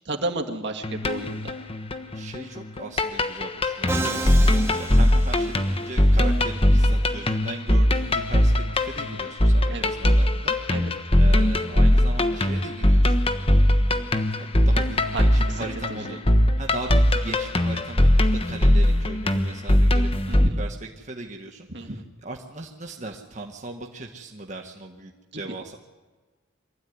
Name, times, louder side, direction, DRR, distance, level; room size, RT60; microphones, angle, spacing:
voice 1, 0.1-1.5 9.7-9.9 10.7-10.9 15.1-15.2 15.5-16.2 20.2-20.6 21.7-22.0 25.3-25.4, right 2 dB, 60° right, 3 dB, 2.1 m, -32 dB
sound 1, 0.8-20.5, left 1 dB, 30° left, 1.2 m, -20 dB
voice 2, 2.1-10.5 11.2-13.2 13.5-16.2 16.6-25.8, right 2 dB, 40° right, 1 dB, 1.6 m, -38 dB
Musical instrument, 3.9-6.0, right 3 dB, 15° right, 1.6 m, -31 dB
24.0 x 14.0 x 9.6 m, 1.3 s
head